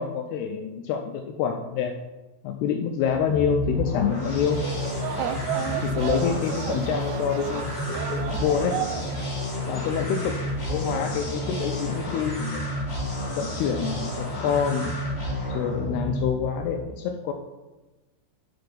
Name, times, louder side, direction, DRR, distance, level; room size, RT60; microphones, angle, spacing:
voice 1, 0.0-1.9 2.4-4.6 5.7-8.8 9.7-10.4 10.7-12.8 13.4-14.9 15.5-17.3, left 7 dB, 80° left, 4 dB, 2.5 m, -27 dB
sound 1, 3.0-16.8, left 1 dB, 35° left, 1.0 m, -30 dB
sound 2, 4.5-9.3 9.6-10.3 10.7-11.2, right 9 dB, 85° right, 2.6 m, -33 dB
8.0 x 6.8 x 5.2 m, 1.1 s
omnidirectional pair, 5.0 m